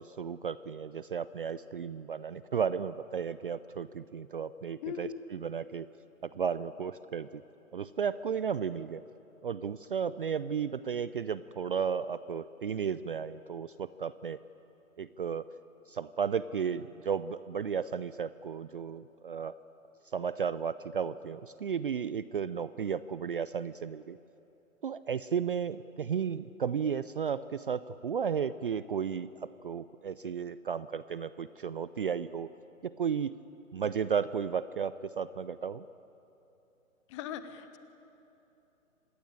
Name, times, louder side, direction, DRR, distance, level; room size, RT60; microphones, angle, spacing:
voice 1, 0.0-5.9 6.3-7.4 7.7-9.0 9.4-14.4 15.0-15.4 15.9-19.6 20.1-24.2 24.8-32.5 32.8-33.3 33.7-35.9, right 7 dB, 40° right, 16 dB, 0.5 m, -34 dB
voice 2, 4.8-5.2 37.1-37.8, left 9 dB, 20° left, 11 dB, 1.1 m, -39 dB
26.0 x 20.0 x 8.8 m, 3.0 s
figure-of-eight pair, 135°, 42 cm